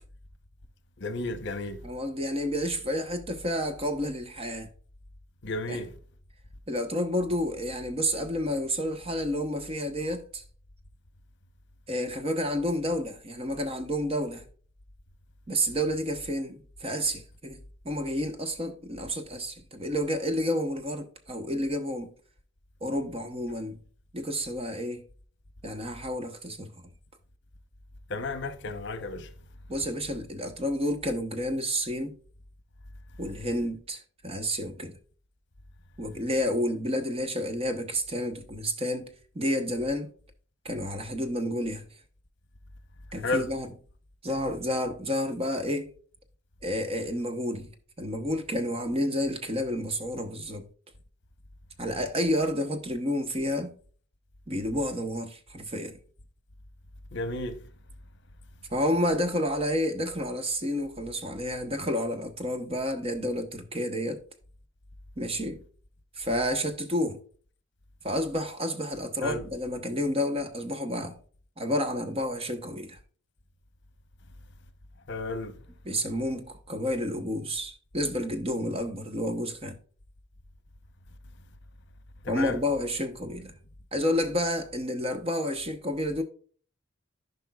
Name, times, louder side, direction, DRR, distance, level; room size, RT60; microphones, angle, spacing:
voice 1, 1.0-1.8 5.4-5.9 28.1-29.3 43.2-43.5 57.1-57.6 69.2-69.4 75.1-75.5 82.2-82.6, left 2 dB, 55° left, 0.9 m, -32 dB
voice 2, 1.8-4.7 5.7-5.8 6.7-10.4 11.9-14.4 15.5-17.6 17.8-22.1 22.8-23.8 24.1-25.0 25.6-26.7 29.7-32.1 33.2-34.9 36.0-39.1 39.3-40.1 40.6-41.9 43.1-43.7 44.2-45.9 46.6-47.7 48.0-50.7 51.8-53.7 54.5-56.0 58.7-64.2 65.2-65.6 66.2-67.2 68.0-71.2 71.6-73.0 75.8-79.8 82.3-83.6 83.9-86.2, equal, 30° right, 1.0 m, -30 dB
14.5 x 5.3 x 2.4 m
head